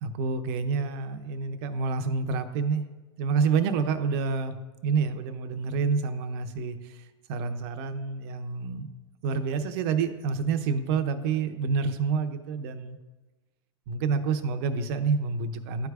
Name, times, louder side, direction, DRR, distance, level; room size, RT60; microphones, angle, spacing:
voice 1, 0.0-2.8 3.2-4.6 4.8-7.0 7.3-8.9 9.2-13.0 13.9-15.9, right 5 dB, 55° right, 9 dB, 0.7 m, -28 dB
12.5 x 4.7 x 2.4 m, 1.2 s
hypercardioid pair, 105°, 15 cm